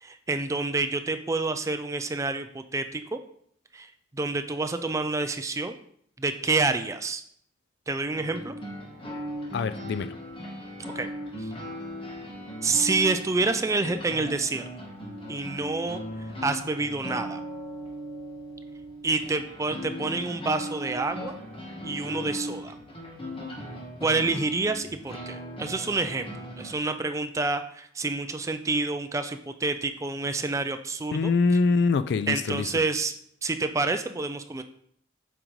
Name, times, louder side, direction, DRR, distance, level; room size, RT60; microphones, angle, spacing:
voice 1, 0.0-3.2 3.7-5.7 6.2-7.2 7.9-8.5 11.0-11.1 11.4-11.5 12.6-14.6 15.3-16.0 16.4-17.4 19.0-21.4 21.8-22.8 24.0-26.3 26.6-31.3 32.3-33.2 33.4-34.6, right 3 dB, 15° right, 0.3 m, -28 dB
sound 1, 8.1-26.7, equal, 30° left, 1.2 m, -38 dB
voice 2, 9.5-10.2 31.1-32.7, left 4 dB, 60° left, 0.3 m, -24 dB
7.8 x 5.1 x 3.1 m
head